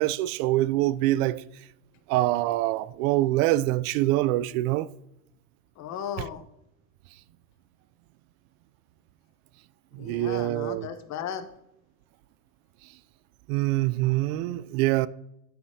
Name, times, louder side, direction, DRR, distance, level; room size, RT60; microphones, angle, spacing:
voice 1, 0.0-1.4 2.1-4.9 6.2-6.3 9.9-10.9 13.5-15.1, right 16 dB, 70° right, 0.5 m, -25 dB
voice 2, 5.8-6.4 10.0-11.5, left 8 dB, 40° left, 0.9 m, -36 dB
13.5 x 5.1 x 2.7 m
supercardioid pair, 125°, 45 cm